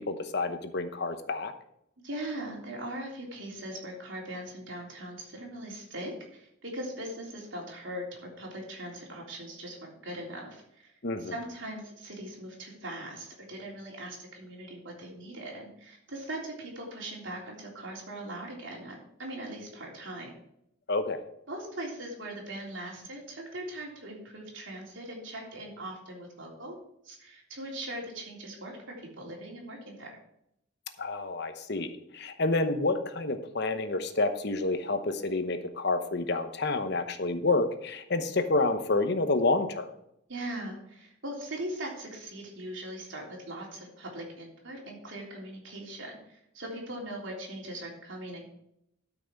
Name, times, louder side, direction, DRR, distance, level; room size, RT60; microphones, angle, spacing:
voice 1, 0.1-1.5 11.0-11.4 20.9-21.2 31.0-39.9, left 3 dB, 55° left, 9 dB, 0.9 m, -29 dB
voice 2, 2.0-10.9 11.2-20.3 21.5-26.8 27.0-30.2 40.3-48.5, right 1 dB, 65° right, -1 dB, 3.5 m, -40 dB
12.5 x 6.0 x 4.6 m, 0.77 s
head